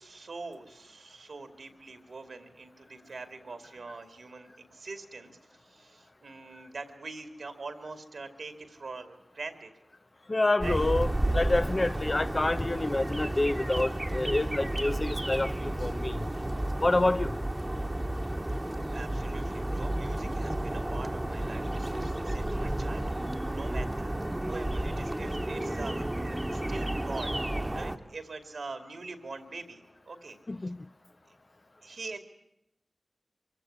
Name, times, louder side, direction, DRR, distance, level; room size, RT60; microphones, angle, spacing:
voice 1, 0.0-9.7 10.6-10.8 18.9-27.4 27.7-30.7 31.8-32.2, right 3 dB, 80° right, 2.4 m, -44 dB
voice 2, 10.3-11.1 11.3-16.2 16.8-17.3 30.5-30.8, left 2 dB, 40° left, 0.8 m, -27 dB
sound 1, 10.6-28.0, right 1 dB, 20° right, 1.3 m, -32 dB
23.5 x 16.0 x 9.9 m
cardioid pair, 40°, 0 cm